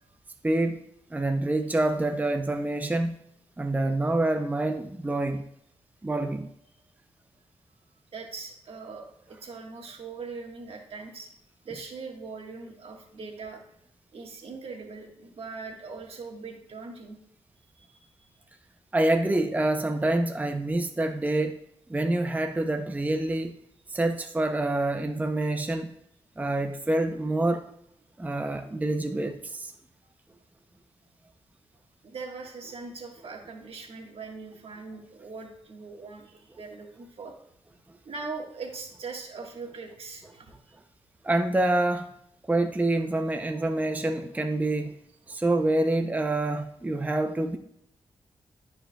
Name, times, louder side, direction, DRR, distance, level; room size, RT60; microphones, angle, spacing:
voice 1, 0.4-0.8 1.1-3.2 3.6-5.4 6.0-6.5 18.9-21.6 21.9-23.5 23.9-25.9 26.4-27.7 28.2-29.7 41.2-42.1 42.5-44.9 45.3-47.6, right 2 dB, 15° right, 7 dB, 0.6 m, -26 dB
voice 2, 8.1-11.3 11.6-13.6 14.1-17.2 17.8-18.1 32.0-37.3 38.0-40.5 45.3-45.4, right 4 dB, 65° right, 2 dB, 1.5 m, -41 dB
12.5 x 4.6 x 2.3 m, 0.73 s
cardioid pair, 60°, 10 cm